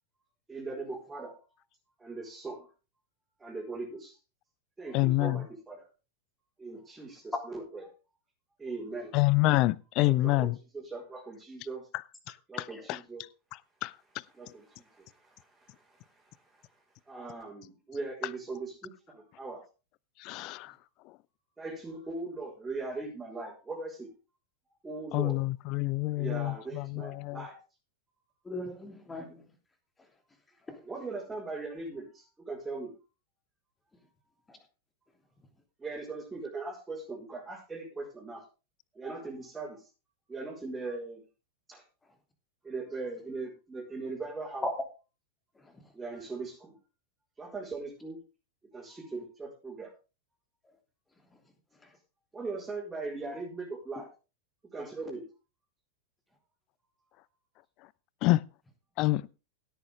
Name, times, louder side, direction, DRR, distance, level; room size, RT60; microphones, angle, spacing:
voice 1, 0.5-1.4 2.0-2.7 3.4-4.2 4.8-5.9 6.6-7.8 8.6-9.2 10.0-11.9 12.5-13.2 14.3-16.8 17.0-19.6 21.6-24.1 24.8-25.4 26.1-27.6 30.8-32.9 35.8-38.4 38.9-39.9 40.3-41.2 41.7-41.8 42.6-44.7 45.9-46.8 47.4-48.2 48.7-49.9 52.3-54.1 54.7-55.2, right 3 dB, 10° right, 4.7 m, -40 dB
voice 2, 4.9-5.5 9.1-10.6 12.3-13.0 13.8-13.9 20.2-20.7 25.1-27.4 58.2-58.5 59.0-59.3, left 19 dB, 40° left, 0.5 m, -27 dB
voice 3, 28.4-29.5 30.7-30.8 34.5-34.6 44.6-44.7 45.6-45.9 51.8-51.9, left 1 dB, 15° left, 3.1 m, -38 dB
16.5 x 9.2 x 3.6 m
figure-of-eight pair, 90°, 0 cm